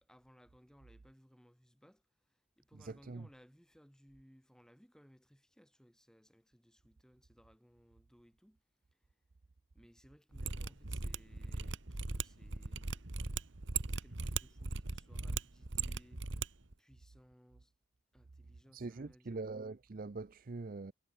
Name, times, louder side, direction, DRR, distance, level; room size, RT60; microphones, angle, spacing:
voice 1, 0.0-8.6 8.9-9.2 9.7-13.1 13.9-16.3 16.8-17.7 18.1-19.5, equal, 5° left, 6.3 m, -64 dB
voice 2, 2.8-3.3 18.7-20.9, right 3 dB, 45° right, 0.5 m, -43 dB
Mechanisms, 10.3-16.5 16.7-16.8, right 4 dB, 65° right, 1.6 m, -38 dB
head